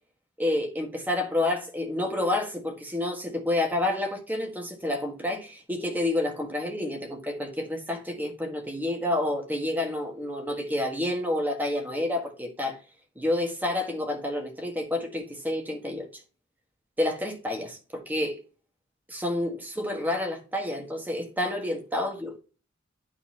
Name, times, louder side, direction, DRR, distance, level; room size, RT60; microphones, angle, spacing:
voice 1, 0.4-12.8 13.1-16.1 17.0-18.4 19.1-22.4, left 1 dB, 10° right, 1.6 m, -29 dB
12.0 x 4.1 x 2.9 m
head